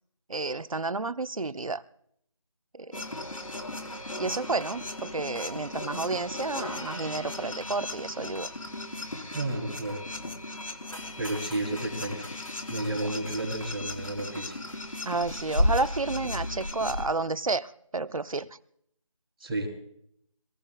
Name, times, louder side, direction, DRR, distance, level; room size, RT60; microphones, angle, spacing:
voice 1, 0.3-1.8 2.7-3.1 4.2-8.5 15.0-18.6, right 3 dB, 75° right, 14 dB, 0.8 m, -31 dB
sound 1, 2.9-17.1, left 1 dB, 80° left, 2.9 m, -35 dB
voice 2, 9.3-10.0 11.2-12.3 12.7-14.6 19.4-19.7, right 2 dB, 10° right, -11 dB, 2.5 m, -32 dB
26.0 x 17.0 x 2.2 m, 0.72 s
figure-of-eight pair, 165°, 18 cm